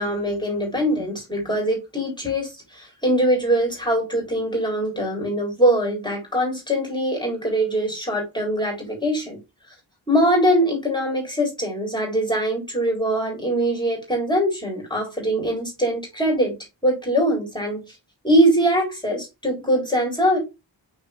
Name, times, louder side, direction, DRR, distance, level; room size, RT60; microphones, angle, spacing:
voice 1, 0.0-9.4 10.1-16.6 16.8-17.8 18.2-20.4, equal, 10° left, 4.4 m, -22 dB
6.1 x 5.3 x 3.7 m
cardioid pair, 45°, 46 cm